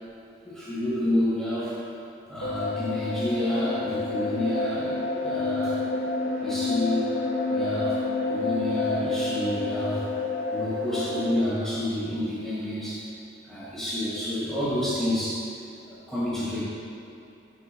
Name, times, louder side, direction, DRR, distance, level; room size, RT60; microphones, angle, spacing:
voice 1, 0.4-1.8 2.3-6.0 6.4-7.1 7.5-8.0 8.3-10.0 10.5-13.1 13.5-15.4 15.9-16.6, left 1 dB, 5° left, -11 dB, 1.7 m, -29 dB
sound 1, 2.4-11.3, left 3 dB, 80° left, 1.2 m, -29 dB
12.5 x 6.2 x 2.3 m, 2.8 s
head